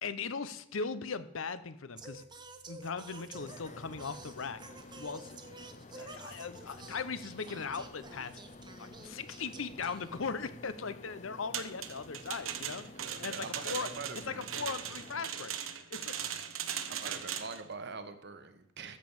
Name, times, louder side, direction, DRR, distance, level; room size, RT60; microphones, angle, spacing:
voice 1, 0.0-2.2 2.7-4.6 5.0-5.4 5.9-8.4 8.8-12.9 13.2-13.9 14.3-15.6 15.9-16.3, left 5 dB, 70° left, 13 dB, 0.8 m, -39 dB
Singing, 1.9-10.7, right 3 dB, 20° right, 0.9 m, -51 dB
sound 1, 3.3-15.2, left 2 dB, 35° left, 0.6 m, -51 dB
sound 2, 11.5-17.6, right 9 dB, 80° right, 1.0 m, -39 dB
voice 2, 12.8-14.5 15.4-15.5 16.9-19.0, right 4 dB, 55° right, 10 dB, 1.1 m, -44 dB
14.0 x 5.3 x 7.2 m, 0.78 s
head